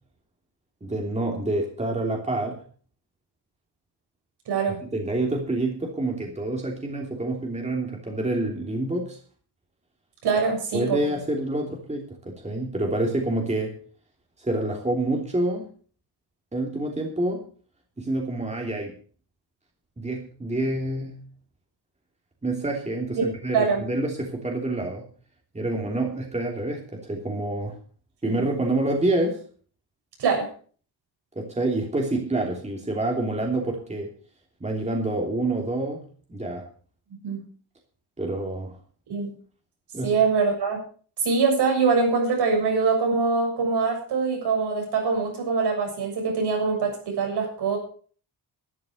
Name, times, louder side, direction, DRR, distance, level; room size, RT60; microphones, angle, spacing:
voice 1, 0.8-2.6 4.8-9.2 10.7-13.8 14.4-15.7 16.5-17.4 18.0-18.9 20.0-21.2 22.4-25.0 25.5-27.8 28.2-29.4 31.3-34.1 34.6-36.0 36.3-36.6 38.2-38.8 39.9-40.1, right 2 dB, 15° right, 1 dB, 3.1 m, -27 dB
voice 2, 4.5-4.8 10.2-11.0 23.5-23.8 28.3-28.4 30.2-30.5 37.2-37.5 39.1-39.3 40.0-40.8 41.2-47.8, right 4 dB, 80° right, 2 dB, 7.3 m, -23 dB
12.5 x 11.0 x 6.5 m, 0.44 s
cardioid pair, 110°, 40 cm